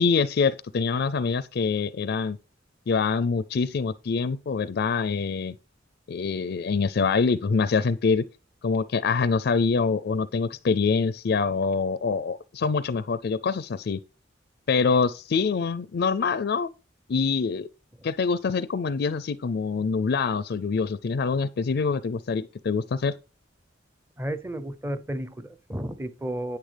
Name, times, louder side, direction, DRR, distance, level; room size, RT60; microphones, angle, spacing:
voice 1, 0.0-2.4 2.9-5.5 6.1-8.2 8.6-14.0 14.7-16.7 17.1-17.7 18.0-23.1, left 5 dB, 55° left, 0.4 m, -25 dB
voice 2, 24.2-26.6, right 1 dB, 10° right, 0.6 m, -32 dB
10.0 x 8.5 x 3.4 m
head